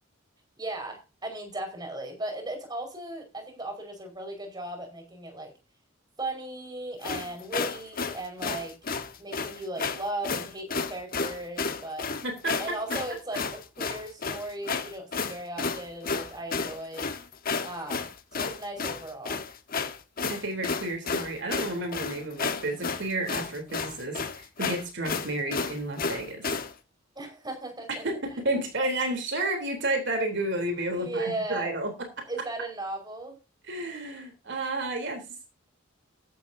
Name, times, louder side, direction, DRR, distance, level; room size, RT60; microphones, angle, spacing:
voice 1, 0.6-5.5 6.2-8.7 9.2-12.1 12.6-17.1 17.6-19.4 27.1-28.0 30.9-31.7 32.3-33.4, right 2 dB, 20° right, 5.1 m, -37 dB
sound 1, 7.0-26.7, left 4 dB, 45° left, 1.3 m, -32 dB
voice 2, 12.2-12.8 20.3-26.5 27.9-32.2 33.6-35.3, right 2 dB, 60° right, 3.5 m, -31 dB
15.0 x 11.0 x 2.8 m
head